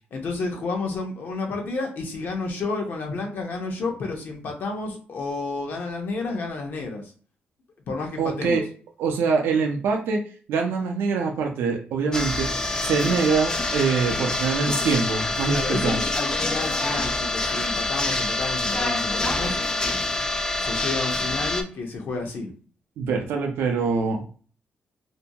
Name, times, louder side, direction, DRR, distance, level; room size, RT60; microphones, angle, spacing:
voice 1, 0.1-7.1 7.9-8.6 15.5-19.6 20.6-22.5, left 3 dB, 60° left, 2 dB, 0.7 m, -31 dB
voice 2, 8.2-8.6 9.0-10.2 10.5-12.5 12.8-16.0 23.0-24.2, right 5 dB, 85° right, 2 dB, 0.4 m, -24 dB
sound 1, 12.1-21.6, left 2 dB, 20° left, 0.3 m, -26 dB
2.6 x 2.2 x 2.7 m, 0.41 s
cardioid pair, 130°, 4 cm